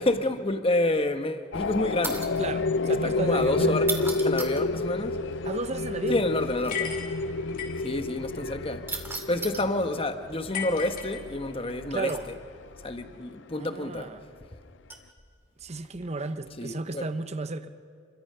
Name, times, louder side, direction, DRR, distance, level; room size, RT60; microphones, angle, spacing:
voice 1, 0.0-2.3 3.0-3.9 4.2-5.2 6.1-6.9 7.8-8.9 9.3-12.3 12.8-14.1 16.6-17.0, left 2 dB, 30° left, 1.2 m, -28 dB
sound 1, 1.5-13.1, left 3 dB, 90° left, 0.6 m, -30 dB
sound 2, 2.0-2.5 3.8-4.7 6.6-6.7 8.9-9.7 12.1-12.5 14.9-15.1 16.0-16.3, right 3 dB, 15° right, 2.3 m, -35 dB
voice 2, 2.4-4.1 5.4-6.2 11.9-12.3 13.5-14.2 15.6-17.7, right 3 dB, 40° right, 1.0 m, -34 dB
sound 3, 6.7-7.9 10.5-11.7, left 9 dB, 50° left, 3.2 m, -35 dB
29.0 x 23.0 x 5.6 m
head